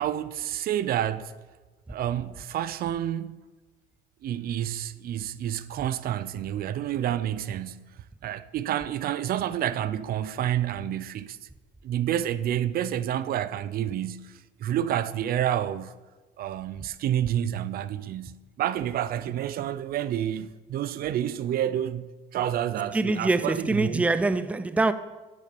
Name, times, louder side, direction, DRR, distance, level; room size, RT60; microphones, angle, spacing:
voice 1, 0.0-1.3 1.9-3.4 4.2-7.9 8.2-11.4 11.8-16.0 16.4-22.1 22.3-24.0, right 11 dB, 60° right, 0.6 m, -29 dB
voice 2, 22.9-24.9, right 2 dB, 10° right, 0.5 m, -24 dB
10.5 x 8.4 x 6.9 m
cardioid pair, 110°, 17 cm